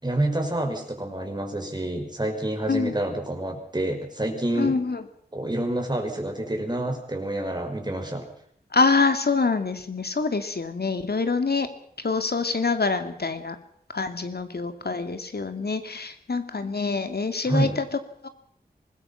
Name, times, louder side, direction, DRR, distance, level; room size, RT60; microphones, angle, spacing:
voice 1, 0.0-4.8 5.3-8.3 17.4-17.8, right 1 dB, 25° right, 3 dB, 5.7 m, -28 dB
voice 2, 4.6-5.0 8.7-11.7 12.0-13.6 13.9-17.8 18.2-18.3, left 4 dB, 70° left, 8 dB, 2.5 m, -25 dB
25.0 x 20.0 x 5.8 m, 0.66 s
wide cardioid pair, 70°, 17 cm